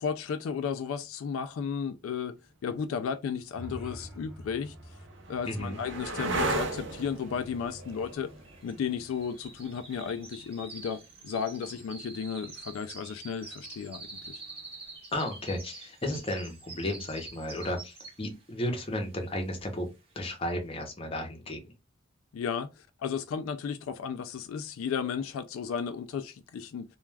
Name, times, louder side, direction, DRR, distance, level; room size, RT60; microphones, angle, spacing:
voice 1, 0.0-2.3 2.6-4.7 5.3-8.3 8.6-14.4 22.3-22.7 23.0-26.8, left 6 dB, 90° left, 0.3 m, -34 dB
sound 1, 3.1-3.2 4.0-11.7 14.0-14.5, right 2 dB, 60° right, 0.6 m, -37 dB
sound 2, 3.4-7.4, equal, ahead, 0.9 m, -48 dB
voice 2, 5.5-5.8 15.1-19.9 20.2-21.6, left 1 dB, 25° left, 0.7 m, -33 dB
sound 3, 7.0-18.4 18.8-19.1 19.6-19.7, right 3 dB, 30° right, 0.8 m, -47 dB
2.3 x 2.2 x 3.2 m
head